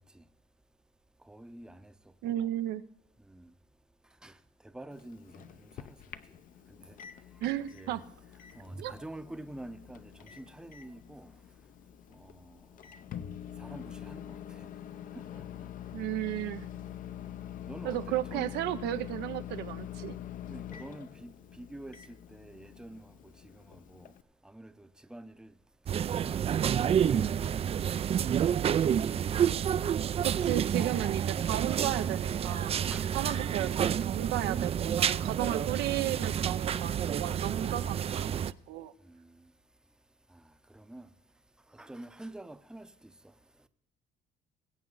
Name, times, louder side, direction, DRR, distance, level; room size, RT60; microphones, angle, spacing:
voice 1, 1.3-1.7 4.2-4.3 4.7-5.2 7.7-8.0 8.6-10.0 10.4-11.3 13.7-14.2 17.7-18.0 18.3-18.5 20.5-21.3 21.6-21.9 22.3-23.0 24.5-24.7 25.1-25.5 26.3-27.2 32.9-33.4 40.9-41.0 41.8-42.8, right 1 dB, 5° right, 0.7 m, -45 dB
voice 2, 2.2-2.8 7.4-8.0 8.8-8.9 15.9-16.7 17.8-20.2 30.2-32.8 33.1-38.3 38.7-38.9, right 13 dB, 85° right, 0.8 m, -34 dB
Microwave oven, 4.9-24.2, left 10 dB, 55° left, 0.8 m, -45 dB
sound 1, 25.9-38.5, right 9 dB, 35° right, 0.4 m, -29 dB
21.0 x 8.4 x 4.0 m
cardioid pair, 110°, 17 cm